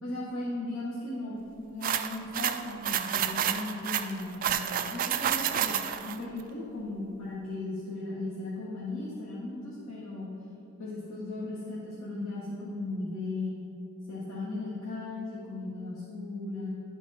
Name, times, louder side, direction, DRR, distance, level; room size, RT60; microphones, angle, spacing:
voice 1, 0.0-4.5 4.9-10.3 10.8-13.6 14.1-16.7, left 2 dB, 80° left, -9 dB, 1.4 m, -37 dB
sound 1, 1.8-6.2, right 9 dB, 40° right, 0.3 m, -29 dB
11.5 x 4.5 x 4.2 m, 2.6 s
head